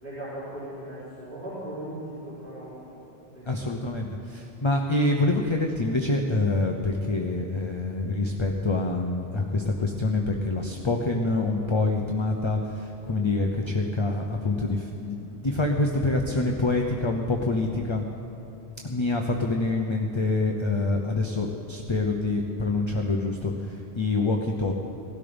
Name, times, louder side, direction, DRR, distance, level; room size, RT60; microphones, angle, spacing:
voice 1, 0.0-3.0 3.3-3.8, right 1 dB, 50° right, -13 dB, 4.6 m, -38 dB
voice 2, 3.5-18.0 18.8-24.7, left 2 dB, 30° left, 2 dB, 0.8 m, -26 dB
17.5 x 12.5 x 5.3 m, 2.8 s
omnidirectional pair, 1.1 m